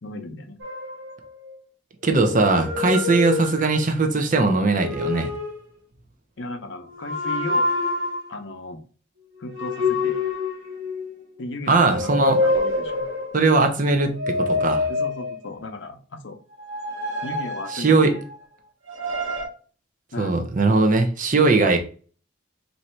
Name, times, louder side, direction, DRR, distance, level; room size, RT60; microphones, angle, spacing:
voice 1, 0.0-0.6 6.4-7.7 8.3-8.8 9.4-10.2 11.4-13.0 14.9-16.4 17.2-18.2 20.1-20.3, left 2 dB, 55° left, 7 dB, 0.6 m, -35 dB
sound 1, 0.6-1.5 2.0-4.1 4.7-5.6 6.9-8.3 9.5-11.2 11.7-13.4 14.0-15.6 16.5-18.4 18.9-19.4, left 3 dB, 70° right, 1.1 m, -27 dB
voice 2, 2.0-5.3 11.7-12.4 13.3-14.9 17.7-18.1 20.2-21.8, right 3 dB, 40° right, 5 dB, 0.6 m, -20 dB
3.1 x 2.7 x 4.3 m, 0.40 s
head